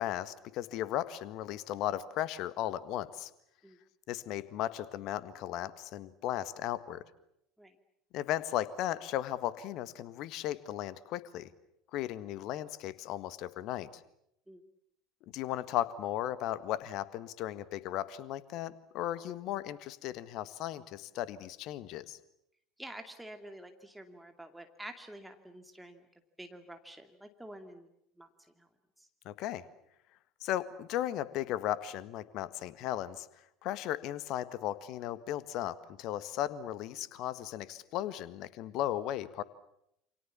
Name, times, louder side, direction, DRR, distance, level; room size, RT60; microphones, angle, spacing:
voice 1, 0.0-3.3 4.1-7.0 8.1-11.5 11.9-14.0 15.3-22.2 29.2-29.6 30.4-33.3 33.6-39.4, left 12 dB, 50° left, 16 dB, 1.6 m, -36 dB
voice 2, 22.8-26.0 26.4-27.9 28.2-28.7 29.0-29.1, right 1 dB, 5° right, 6 dB, 2.5 m, -48 dB
29.0 x 27.5 x 7.3 m, 0.78 s
figure-of-eight pair, 65°, 0 cm